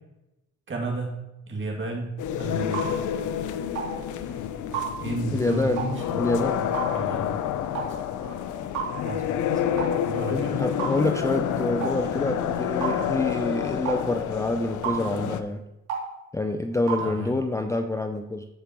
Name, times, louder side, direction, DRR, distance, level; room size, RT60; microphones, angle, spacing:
voice 1, 0.7-1.1 1.5-2.9 4.3-4.4 5.0-6.7 6.9-7.5 8.2-8.4 9.0-9.7 10.1-10.6 17.0-17.6, right 3 dB, 40° right, -1 dB, 2.4 m, -34 dB
sound 1, 2.2-15.4, left 9 dB, 75° left, 0.6 m, -28 dB
sound 2, 2.7-2.9 3.7-3.9 4.7-4.9 5.8-5.9 6.7-6.9 7.7-7.9 8.7-8.9 9.8-10.0 10.8-11.0 11.8-12.0 12.8-13.0 13.8-14.0 14.8-15.0 15.9-16.1 16.9-17.1, right 7 dB, 80° right, 2.8 m, -30 dB
voice 2, 5.3-5.8 6.2-6.6 10.3-15.6 16.3-18.5, left 2 dB, 10° left, 6 dB, 0.4 m, -27 dB
13.5 x 5.0 x 3.0 m, 0.94 s
cardioid pair, 90°, 30 cm